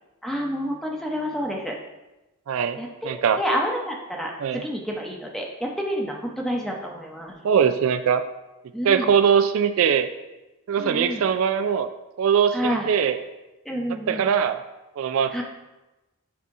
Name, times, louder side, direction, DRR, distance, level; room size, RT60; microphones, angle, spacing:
voice 1, 0.2-1.7 2.8-7.4 8.7-9.1 10.8-11.2 12.5-12.9 13.6-14.3 15.3-15.4, equal, ahead, -1 dB, 0.7 m, -29 dB
voice 2, 2.5-2.8 3.0-3.4 4.4-4.6 7.4-8.2 8.8-10.1 10.7-11.9 12.2-13.2 14.1-14.6 15.0-15.4, right 7 dB, 65° right, 10 dB, 0.3 m, -21 dB
8.4 x 2.8 x 4.6 m, 1.0 s
head